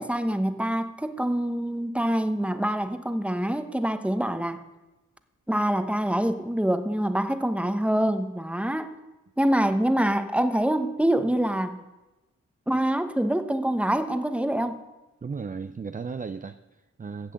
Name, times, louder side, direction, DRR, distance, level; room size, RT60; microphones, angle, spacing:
voice 1, 0.0-4.6 5.5-8.9 9.4-11.8 12.7-14.8, right 1 dB, 5° right, 9 dB, 1.0 m, -25 dB
voice 2, 15.2-17.3, right 5 dB, 25° right, 10 dB, 0.5 m, -35 dB
10.5 x 7.5 x 7.7 m, 1.1 s
cardioid pair, 45°, 30 cm